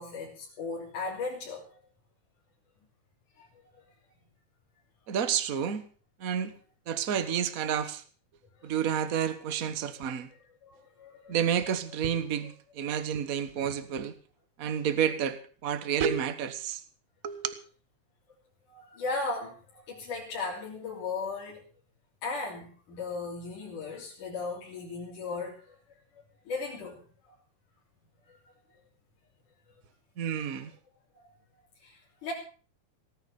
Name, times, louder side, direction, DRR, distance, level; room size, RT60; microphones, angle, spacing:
voice 1, 0.0-1.7 3.4-3.5 10.6-11.4 18.7-21.6 22.2-25.8 26.5-27.0 31.8-32.3, left 3 dB, 90° left, 4.9 m, -36 dB
voice 2, 5.1-5.9 6.2-6.5 6.9-8.0 8.6-10.3 11.3-14.1 14.6-16.8 17.2-17.5 30.2-30.7, right 8 dB, 55° right, 0.9 m, -30 dB
18.0 x 9.9 x 6.9 m
omnidirectional pair, 3.5 m